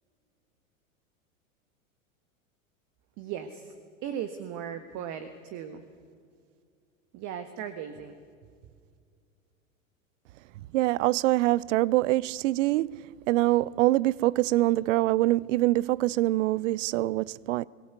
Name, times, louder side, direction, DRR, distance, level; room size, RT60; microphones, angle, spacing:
voice 1, 3.2-3.7 4.0-5.8 7.1-8.2, right 9 dB, 45° right, 1.5 m, -37 dB
voice 2, 10.7-17.6, right 17 dB, 65° right, 0.6 m, -24 dB
22.5 x 17.0 x 8.1 m
hypercardioid pair, 100°, 40 cm